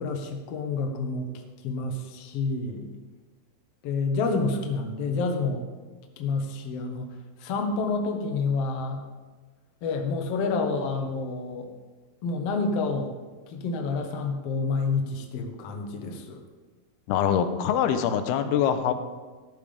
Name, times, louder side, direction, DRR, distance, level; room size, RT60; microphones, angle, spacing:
voice 1, 0.0-2.9 3.8-5.6 6.2-7.1 7.4-9.1 9.8-11.7 12.2-13.1 13.5-16.4, left 3 dB, 65° left, 3 dB, 1.6 m, -29 dB
voice 2, 17.1-18.9, left 8 dB, 80° left, 9 dB, 2.7 m, -24 dB
15.0 x 12.0 x 3.5 m, 1.4 s
omnidirectional pair, 4.6 m